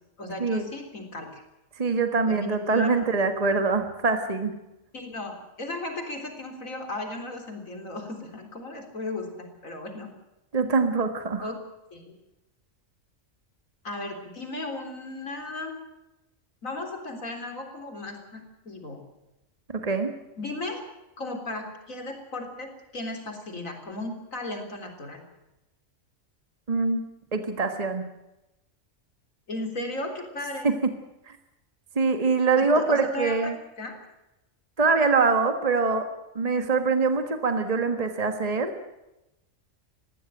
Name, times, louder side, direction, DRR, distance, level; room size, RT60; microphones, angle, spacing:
voice 1, 0.2-1.4 2.2-2.9 4.9-10.1 11.4-11.6 11.9-12.1 13.8-15.8 16.6-19.0 20.4-20.8 21.2-25.2 29.5-30.7 32.5-33.5 33.8-34.0, left 2 dB, 85° left, 4 dB, 4.0 m, -35 dB
voice 2, 1.8-4.5 10.5-11.5 19.7-20.1 26.7-27.0 27.3-28.1 30.6-30.7 31.9-33.5 34.8-36.1 36.3-38.7, right 4 dB, 30° right, 7 dB, 1.6 m, -24 dB
20.5 x 15.5 x 9.1 m, 0.95 s
omnidirectional pair, 1.4 m